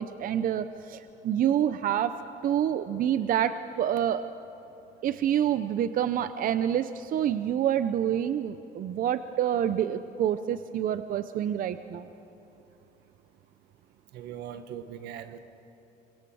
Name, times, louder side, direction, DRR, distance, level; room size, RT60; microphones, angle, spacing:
voice 1, 0.0-2.1 2.4-4.2 5.0-12.1, right 10 dB, 55° right, 12 dB, 0.6 m, -27 dB
voice 2, 14.1-15.4, right 9 dB, 85° right, 10 dB, 1.3 m, -40 dB
24.5 x 22.5 x 6.3 m, 2.9 s
cardioid pair, 110°, 17 cm